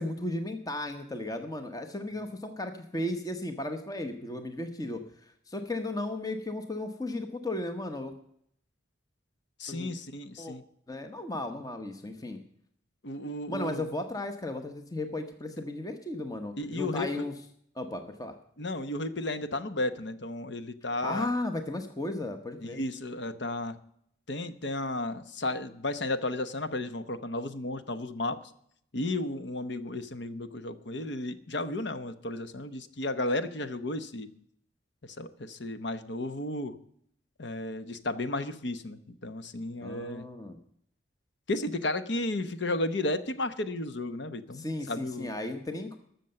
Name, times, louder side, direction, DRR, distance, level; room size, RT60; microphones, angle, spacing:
voice 1, 0.0-8.1 9.7-9.9 10.4-10.5 10.9-12.4 13.5-17.3 17.7-18.3 20.9-22.8 39.8-40.6 44.5-46.0, left 1 dB, 20° left, 7 dB, 0.9 m, -35 dB
voice 2, 9.6-10.6 13.0-13.8 16.6-17.3 18.6-21.3 22.6-23.8 24.3-28.4 28.9-34.3 35.0-36.8 37.4-40.2 41.5-45.3, left 2 dB, 65° left, 11 dB, 0.9 m, -33 dB
13.5 x 6.9 x 7.7 m, 0.70 s
head